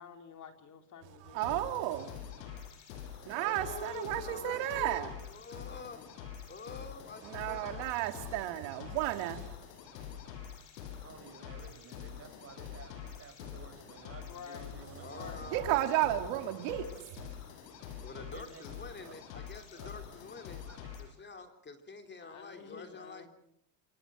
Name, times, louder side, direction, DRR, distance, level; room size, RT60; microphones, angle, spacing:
voice 1, 0.0-1.6 14.2-15.5 22.2-23.3, left 7 dB, 40° left, 3.6 m, -50 dB
voice 2, 1.3-2.1 3.3-5.1 7.2-9.5 15.5-17.3, right 14 dB, 70° right, 2.7 m, -33 dB
sound 1, 1.4-21.0, left 8 dB, 85° left, 7.3 m, -46 dB
voice 3, 3.3-6.1 6.5-7.9 15.0-16.6 18.0-20.6 21.0-23.3, left 4 dB, 20° left, 3.4 m, -47 dB
voice 4, 3.9-4.9 8.0-8.2 11.0-15.8 18.1-18.7 19.0-19.2 19.7-19.9 20.7-20.9 21.4-21.5, right 5 dB, 30° right, 6.1 m, -53 dB
27.0 x 26.0 x 6.4 m
supercardioid pair, 115°, 47 cm